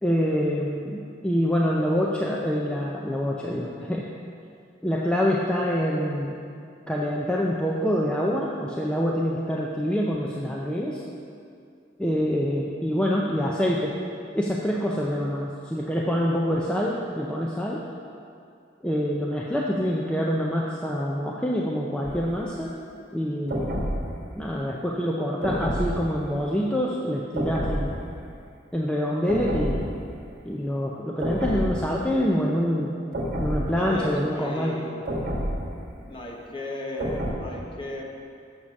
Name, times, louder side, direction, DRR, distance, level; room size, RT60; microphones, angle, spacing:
voice 1, 0.0-4.1 4.8-6.4 6.9-11.0 12.0-13.9 14.3-17.8 18.8-22.7 23.1-23.8 24.4-28.0 28.7-29.9 30.5-32.9 33.4-34.8, equal, 5° left, -3 dB, 0.5 m, -26 dB
sound 1, 22.0-22.3 23.5-24.3 25.4-26.2 27.3-28.1 29.3-30.1 31.2-32.0 33.1-33.9 35.1-35.8 37.0-37.3, equal, 55° right, 1.3 m, -29 dB
voice 2, 33.8-35.0 36.1-38.0, left 1 dB, 30° left, -1 dB, 1.0 m, -35 dB
7.1 x 6.6 x 6.2 m, 2.4 s
head